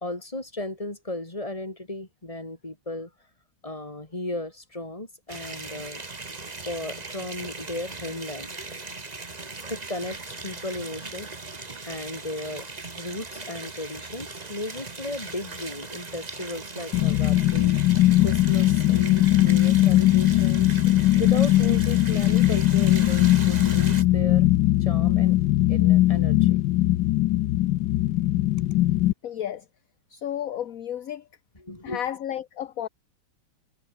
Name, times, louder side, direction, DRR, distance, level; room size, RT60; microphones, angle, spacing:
voice 1, 0.0-3.1 3.6-6.0 6.7-8.5 9.7-11.3 11.9-12.7 13.0-17.7 18.2-20.8 21.2-24.5 24.8-25.4 25.7-26.6 31.6-32.1, left 2 dB, 20° left, 3.9 m, -35 dB
sound 1, 5.3-24.0, right 3 dB, 25° right, 1.7 m, -39 dB
sound 2, 16.9-29.1, left 15 dB, 85° left, 1.3 m, -20 dB
voice 2, 29.2-29.6 30.1-31.3 31.8-32.9, left 10 dB, 55° left, 1.3 m, -32 dB
omnidirectional pair, 1.9 m